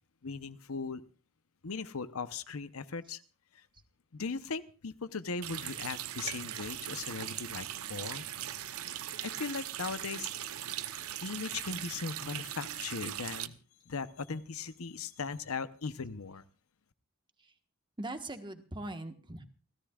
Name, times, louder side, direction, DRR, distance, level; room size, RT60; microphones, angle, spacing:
voice 1, 0.2-1.0 1.6-3.2 3.5-3.6 4.1-8.2 9.2-10.3 11.2-13.6 13.9-16.4, left 4 dB, 80° left, 13 dB, 0.9 m, -38 dB
Water tap faucet, 5.4-13.5, right 11 dB, 85° right, 0.8 m, -40 dB
voice 2, 18.0-19.4, right 2 dB, 20° right, 7 dB, 1.4 m, -40 dB
29.0 x 13.5 x 2.4 m, 0.34 s
head